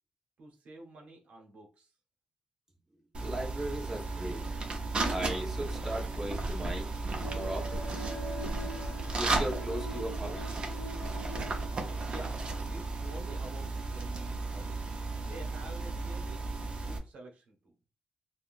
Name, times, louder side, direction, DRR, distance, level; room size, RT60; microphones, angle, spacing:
voice 1, 0.4-1.9 12.1-12.4 12.7-14.8 15.1-16.4 16.7-17.7, right 2 dB, 70° right, 1 dB, 1.0 m, -48 dB
sound 1, 3.1-17.0, right 3 dB, 45° right, 0.7 m, -34 dB
voice 2, 3.2-4.4 5.1-6.9 7.3-7.9 9.2-10.5, right 1 dB, 15° right, 0 dB, 0.9 m, -37 dB
sound 2, 7.2-13.4 13.8-13.9, equal, 90° left, 0.7 m, -44 dB
3.5 x 2.3 x 2.5 m, 0.31 s
cardioid pair, 105°, 2 cm